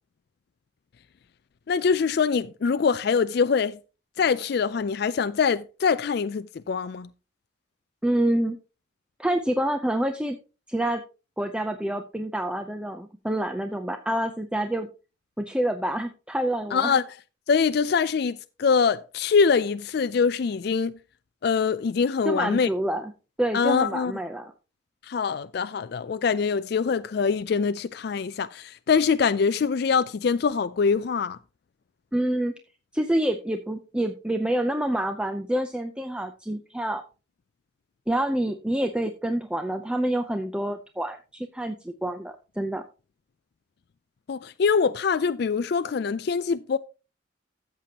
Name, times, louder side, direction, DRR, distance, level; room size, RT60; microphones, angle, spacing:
voice 1, 1.7-3.8 4.2-7.1 16.7-17.0 17.5-20.9 21.4-22.7 23.5-24.1 25.1-31.4 44.3-46.8, left 5 dB, 50° left, 0.3 m, -24 dB
voice 2, 8.0-8.6 9.2-10.4 10.7-11.0 11.4-14.9 15.4-17.0 22.2-23.1 23.4-24.5 32.1-32.5 32.9-37.0 38.1-42.8, right 1 dB, 5° right, 0.5 m, -27 dB
13.5 x 7.5 x 2.9 m
head